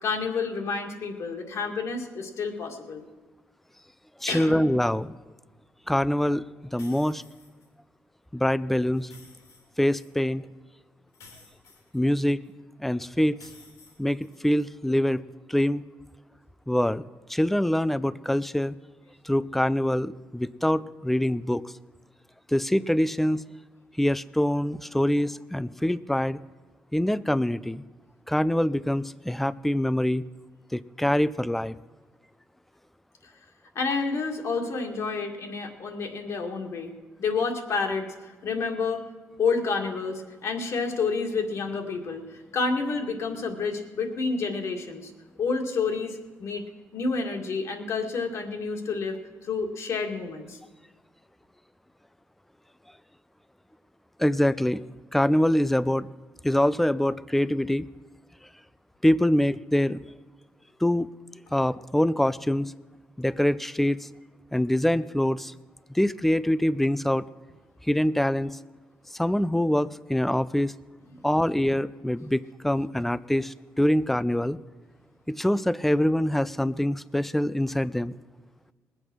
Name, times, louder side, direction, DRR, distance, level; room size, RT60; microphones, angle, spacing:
voice 1, 0.0-3.0 4.3-4.6 33.8-36.9 37.2-39.0 39.4-45.1 45.4-46.6 46.9-49.2 49.4-50.6, left 4 dB, 60° left, 3 dB, 2.0 m, -29 dB
voice 2, 4.2-5.1 5.9-6.4 6.7-7.2 8.3-9.1 9.8-10.5 11.9-12.4 12.8-13.4 14.0-15.2 15.5-15.8 16.7-17.0 17.3-18.8 19.2-21.6 22.5-23.5 24.0-26.4 26.9-27.8 28.3-30.2 30.7-31.8 54.2-54.8 55.1-56.1 56.4-57.9 59.0-60.0 60.8-61.1 61.5-62.7 63.2-64.1 64.5-65.5 65.9-67.2 67.9-68.6 69.1-70.7 71.2-74.6 75.3-78.1, left 1 dB, 5° left, 17 dB, 0.4 m, -24 dB
sound 1, 6.8-7.7 8.9-10.1 11.1-12.5 13.4-14.7, left 3 dB, 80° left, 3.2 m, -53 dB
20.0 x 8.1 x 6.1 m, 1.3 s
cardioid pair, 95°, 6 cm